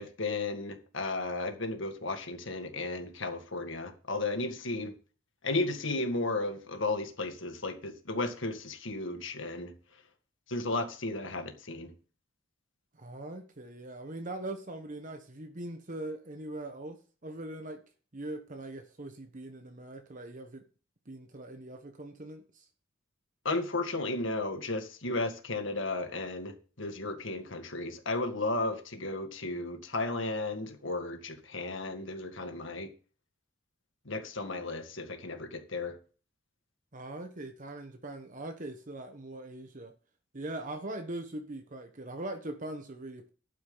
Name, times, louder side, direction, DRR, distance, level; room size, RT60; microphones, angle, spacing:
voice 1, 0.0-4.9 5.4-9.7 10.5-11.9 23.5-32.9 34.1-36.0, left 2 dB, 60° left, 1.9 m, -34 dB
voice 2, 13.0-17.8 18.1-20.6 21.1-22.6 36.9-39.9 40.3-43.3, right 1 dB, 40° right, 1.1 m, -41 dB
11.5 x 9.5 x 4.0 m
head